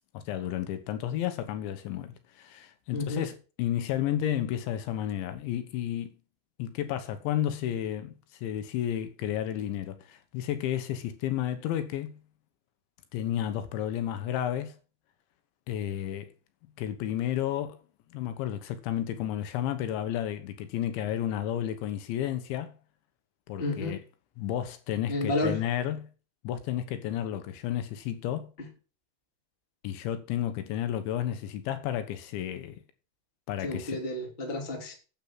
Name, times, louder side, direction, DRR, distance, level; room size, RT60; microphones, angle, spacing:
voice 1, 0.2-6.1 6.6-8.1 8.4-12.2 13.1-14.8 15.7-16.3 16.8-17.8 18.1-22.7 23.5-24.0 24.4-26.1 26.4-28.5 29.8-32.8 33.5-34.0, left 11 dB, 80° left, 3.5 m, -32 dB
voice 2, 2.9-3.3 23.6-24.0 25.1-25.6 33.6-34.9, left 2 dB, 15° left, 2.0 m, -31 dB
9.1 x 8.5 x 6.0 m
omnidirectional pair, 5.3 m